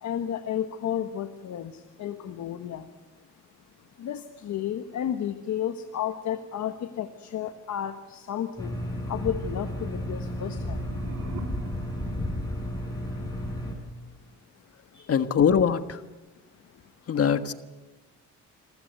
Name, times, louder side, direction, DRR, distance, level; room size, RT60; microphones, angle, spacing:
voice 1, 0.0-2.9 4.0-8.8 9.1-10.9 14.9-15.1 16.7-16.8, left 10 dB, 70° left, 8 dB, 1.4 m, -32 dB
sound 1, 8.6-13.7, left 1 dB, 10° left, 7.0 m, -32 dB
sound 2, 10.2-13.2, right 4 dB, 80° right, 3.2 m, -45 dB
voice 2, 15.1-16.0 17.1-17.5, left 7 dB, 50° left, 10 dB, 1.5 m, -22 dB
27.0 x 15.0 x 9.4 m, 1.2 s
cardioid pair, 90°, 30 cm